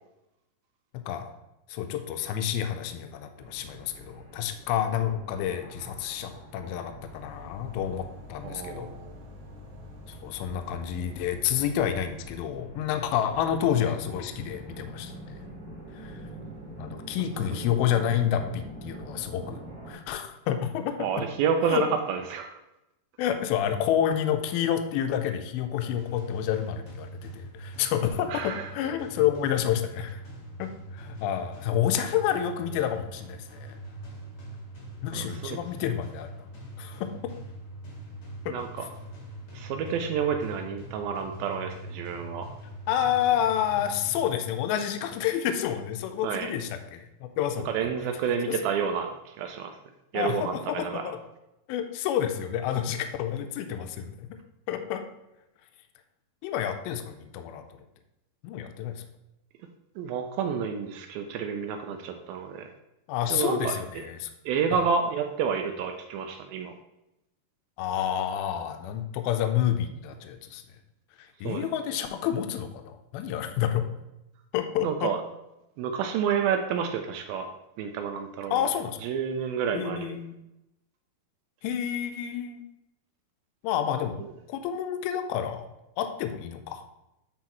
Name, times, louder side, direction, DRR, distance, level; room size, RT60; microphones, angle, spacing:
voice 1, 0.9-1.3 1.7-8.9 10.2-15.1 15.9-16.2 16.8-21.1 21.7-21.8 23.2-30.2 30.6-33.8 35.0-36.3 36.8-37.1 38.5-38.6 42.9-47.9 50.1-51.2 51.7-54.4 54.7-55.0 56.4-57.6 58.4-59.0 63.1-64.3 64.7-64.8 67.8-70.6 71.4-73.8 74.5-75.1 78.5-79.0 79.7-80.3 81.6-82.6 83.6-84.2 84.5-85.7 86.0-86.8, left 10 dB, 80° left, 7 dB, 2.3 m, -29 dB
sound 1, 3.4-19.9, right 1 dB, 45° right, 3.1 m, -45 dB
sound 2, 7.1-12.3, left 3 dB, 65° right, 2.4 m, -48 dB
voice 2, 8.4-9.2 17.5-17.6 21.0-22.6 28.3-28.7 35.1-35.6 38.5-38.9 39.5-42.5 46.2-46.5 47.7-49.1 49.4-49.7 50.1-51.0 60.0-62.7 63.3-64.0 64.5-66.7 71.4-71.7 74.8-75.2 75.8-77.5 77.8-78.7 79.0-80.2, right 7 dB, 85° right, 5 dB, 2.2 m, -29 dB
sound 3, 25.8-44.7, right 1 dB, 50° left, 1.3 m, -43 dB
9.4 x 4.3 x 3.0 m, 0.90 s
omnidirectional pair, 4.6 m